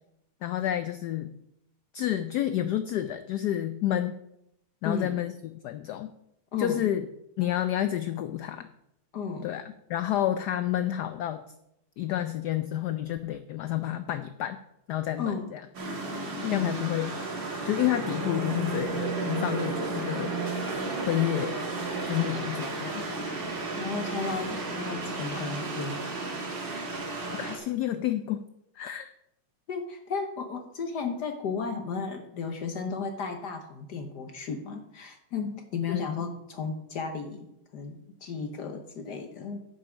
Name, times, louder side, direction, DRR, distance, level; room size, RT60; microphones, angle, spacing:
voice 1, 0.4-1.3 1.9-4.2 4.8-6.1 6.6-7.1 7.4-8.7 9.4-9.6 9.9-11.4 12.0-14.6 14.9-15.6 16.5-17.1 17.6-20.3 21.1-21.6 22.1-23.1 27.4-28.4 28.8-29.1 35.9-36.2, left 12 dB, 80° left, 11 dB, 0.9 m, -29 dB
voice 2, 4.8-5.2 6.5-6.9 9.1-9.5 15.2-15.5 16.4-16.7 23.7-26.3 29.7-39.6, left 5 dB, 60° left, 6 dB, 1.3 m, -34 dB
sound 1, 15.7-27.6, right 3 dB, 60° right, 2.5 m, -33 dB
9.7 x 6.9 x 6.1 m, 0.81 s
omnidirectional pair, 2.3 m